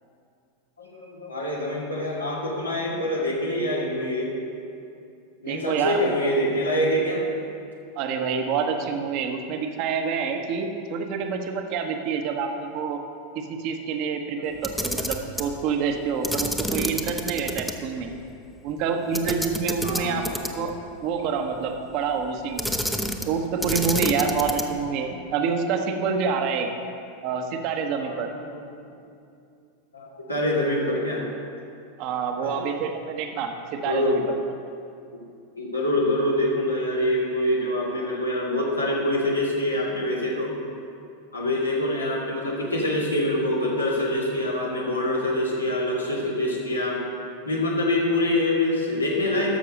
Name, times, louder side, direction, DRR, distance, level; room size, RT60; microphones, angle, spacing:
voice 1, 0.8-4.3 5.4-7.3 14.2-14.6 19.8-20.2 28.0-28.9 29.9-31.2 32.4-32.7 33.8-34.2 35.1-35.2 35.6-40.6 41.3-47.0 47.4-49.6, left 1 dB, 85° left, -4 dB, 2.1 m, -25 dB
voice 2, 5.4-6.3 8.0-13.0 13.3-18.1 18.6-20.7 21.0-22.7 23.2-26.7 27.2-28.3 32.0-34.4, right 6 dB, 45° right, 4 dB, 1.1 m, -27 dB
Camera, 14.5-15.5 16.2-17.7 18.1-18.2 19.1-20.7 22.6-23.3 23.6-24.8, equal, ahead, 0.8 m, -28 dB
12.5 x 6.7 x 5.2 m, 2.5 s
figure-of-eight pair, 90°, 0 cm